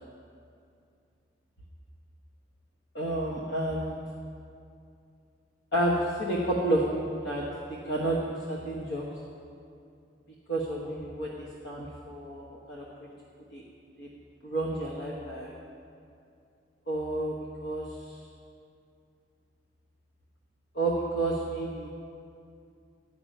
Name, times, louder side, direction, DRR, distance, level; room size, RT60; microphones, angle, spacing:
voice 1, 2.9-4.0 5.7-6.8 7.2-7.4 7.8-9.0 10.5-13.1 13.5-13.6 14.0-14.1 14.4-15.6 16.9-17.3 17.6-18.2 20.7-21.9, right 1 dB, 80° left, -4 dB, 1.3 m, -30 dB
11.5 x 5.9 x 9.0 m, 2.5 s
head